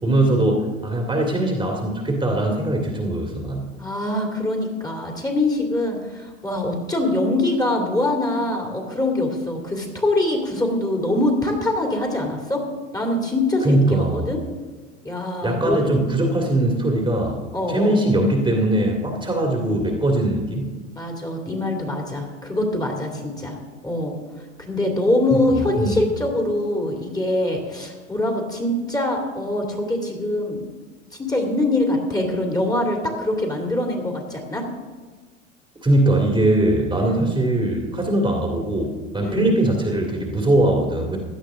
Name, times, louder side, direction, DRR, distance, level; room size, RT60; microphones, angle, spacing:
voice 1, 0.0-3.7 13.6-14.2 15.4-17.4 17.7-20.7 25.3-25.4 25.8-26.0 35.8-41.2, right 1 dB, 10° right, 0 dB, 2.3 m, -21 dB
voice 2, 3.8-12.6 12.9-14.4 15.0-15.9 17.5-18.0 21.0-23.6 23.8-30.6 31.1-34.6 37.0-37.3 39.2-39.5, left 1 dB, 10° left, 1 dB, 2.5 m, -24 dB
16.5 x 11.0 x 3.7 m, 1.3 s
hypercardioid pair, 90°, 40 cm